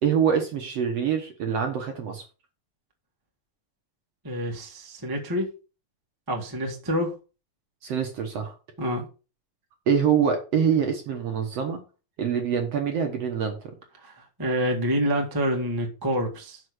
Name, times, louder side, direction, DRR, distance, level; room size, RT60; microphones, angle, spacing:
voice 1, 0.0-2.2 7.8-8.5 9.9-11.8 12.2-13.7, right 7 dB, 55° right, 4 dB, 2.0 m, -25 dB
voice 2, 4.2-5.5 6.3-7.1 8.8-9.1 14.0-16.6, equal, 10° right, 1 dB, 1.0 m, -27 dB
6.4 x 6.4 x 6.3 m, 0.33 s
omnidirectional pair, 4.0 m